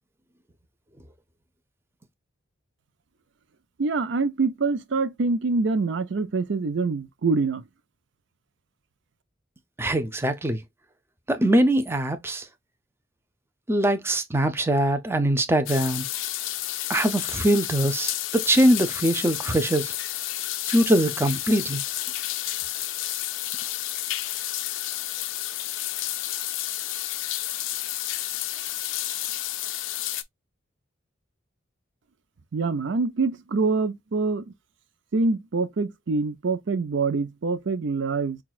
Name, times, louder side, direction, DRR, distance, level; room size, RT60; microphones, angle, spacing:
voice 1, 3.8-7.6 32.5-34.5 35.1-38.4, right 4 dB, 65° right, 0.5 m, -25 dB
voice 2, 9.8-10.6 11.3-12.5 13.7-16.1 16.9-19.9 20.7-21.8, right 1 dB, 10° right, 0.5 m, -22 dB
sound 1, 15.7-30.2, left 14 dB, 75° left, 0.4 m, -31 dB
5.8 x 2.3 x 2.3 m
head